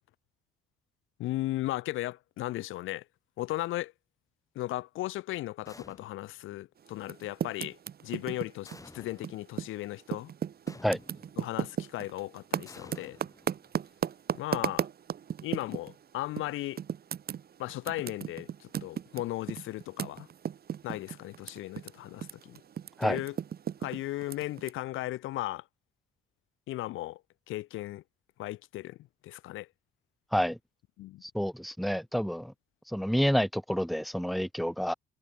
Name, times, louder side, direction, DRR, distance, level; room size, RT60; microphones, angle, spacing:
voice 1, 1.2-3.0 3.4-3.9 4.5-7.8 8.0-10.3 11.4-13.2 14.3-14.9 15.4-16.8 17.6-20.3 20.8-22.6 23.0-23.4 23.8-25.6 26.7-27.2 27.5-28.0 28.4-29.0 29.2-29.7 31.0-31.2, left 16 dB, 85° left, 0.8 m, -36 dB
sound 1, 5.7-6.4 8.7-9.4 10.7-11.4 12.7-13.9, left 2 dB, 15° left, 6.2 m, -52 dB
Typing, 7.0-9.8 10.1-15.9 16.4-16.5 16.8-21.9 22.2-24.7, right 8 dB, 50° right, 1.4 m, -35 dB
voice 2, 31.2-32.5 32.9-34.9, equal, ahead, 0.5 m, -28 dB
cardioid pair, 90°, 20 cm